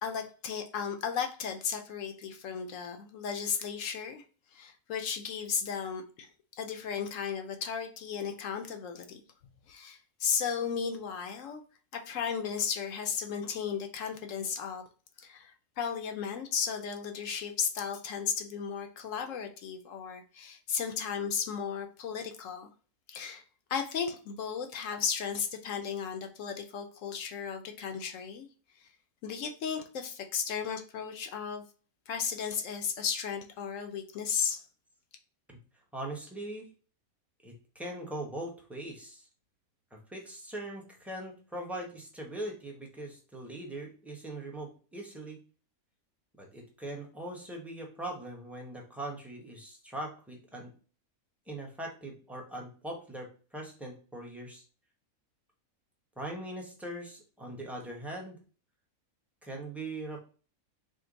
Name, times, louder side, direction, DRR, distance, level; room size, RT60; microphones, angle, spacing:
voice 1, 0.0-4.2 4.5-9.2 9.7-11.6 11.9-14.8 15.2-22.7 23.1-23.4 23.7-28.5 28.8-28.9 29.2-31.6 32.1-34.7, left 7 dB, 70° left, 5 dB, 0.9 m, -35 dB
voice 2, 35.9-36.7 37.4-39.3 39.9-45.4 46.4-50.7 51.5-54.6 56.2-58.4 59.4-60.2, right 1 dB, ahead, -1 dB, 0.7 m, -41 dB
5.0 x 2.1 x 3.9 m, 0.39 s
omnidirectional pair, 1.5 m